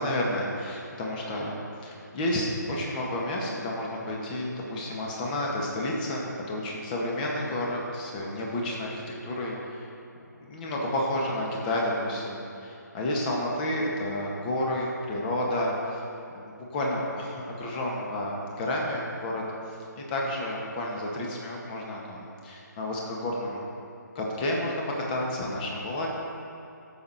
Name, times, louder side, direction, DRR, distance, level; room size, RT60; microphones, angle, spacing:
voice 1, 0.0-1.5 1.8-9.9 10.4-16.0 16.4-19.4 20.0-23.6 24.2-26.1, left 1 dB, 25° left, -2 dB, 1.9 m, -31 dB
14.5 x 6.7 x 4.4 m, 2.8 s
figure-of-eight pair, 150°, 10 cm